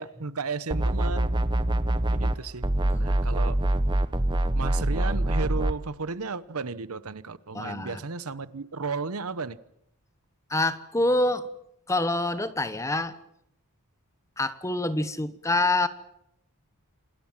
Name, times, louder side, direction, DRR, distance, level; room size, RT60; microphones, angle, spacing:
voice 1, 0.0-1.4 2.1-2.6 3.0-3.6 4.5-9.6, right 4 dB, 75° right, 16 dB, 1.0 m, -34 dB
sound 1, 0.7-2.4 2.6-5.8, right 1 dB, 20° right, 0.8 m, -24 dB
voice 2, 2.8-3.1 7.5-8.0 10.5-11.4 11.9-13.2 14.4-15.9, left 2 dB, 15° left, 13 dB, 1.0 m, -26 dB
27.0 x 20.0 x 7.4 m, 0.80 s
head